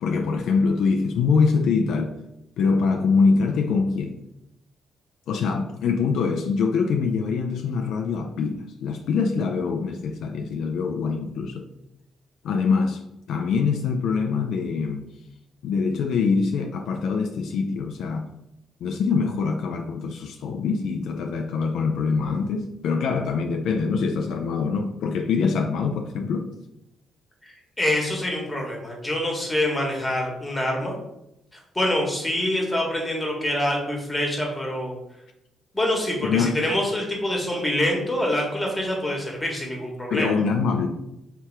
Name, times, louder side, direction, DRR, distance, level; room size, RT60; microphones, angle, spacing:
voice 1, 0.0-2.1 2.6-4.2 5.3-11.6 12.4-13.0 13.3-15.1 15.6-18.3 18.8-26.5 36.2-36.6 40.1-40.9, left 5 dB, 75° left, 5 dB, 0.4 m, -24 dB
voice 2, 27.4-30.9 31.7-34.9 35.7-40.3, left 1 dB, 10° left, -1 dB, 1.4 m, -25 dB
3.3 x 2.9 x 4.6 m, 0.87 s
cardioid pair, 90°, 0 cm